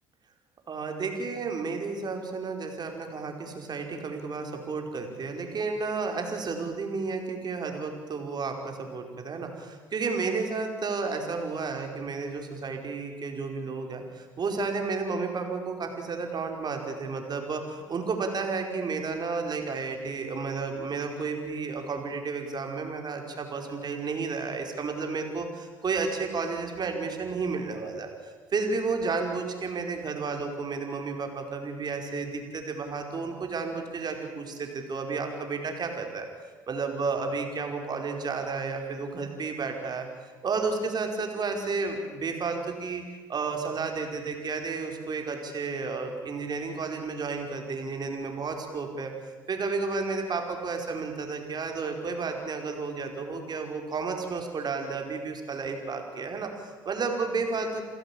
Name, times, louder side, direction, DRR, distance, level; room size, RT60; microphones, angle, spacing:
voice 1, 0.7-36.3 36.7-40.1 40.4-49.1 49.5-57.8, right 4 dB, 40° right, 4 dB, 5.1 m, -32 dB
28.5 x 16.0 x 8.8 m, 1.4 s
hypercardioid pair, 60°, 10 cm